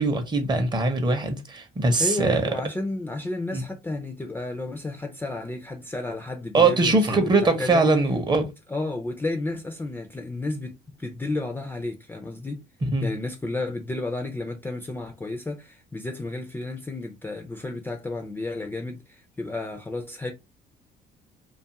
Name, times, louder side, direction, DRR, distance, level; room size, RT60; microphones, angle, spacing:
voice 1, 0.0-2.4 3.5-3.6 6.5-8.5 12.9-13.1, right 3 dB, 25° right, 0.6 m, -21 dB
voice 2, 2.0-7.9 8.7-12.6 13.0-20.3, left 2 dB, 10° left, 0.4 m, -32 dB
2.5 x 2.3 x 2.7 m
cardioid pair, 110°, 17 cm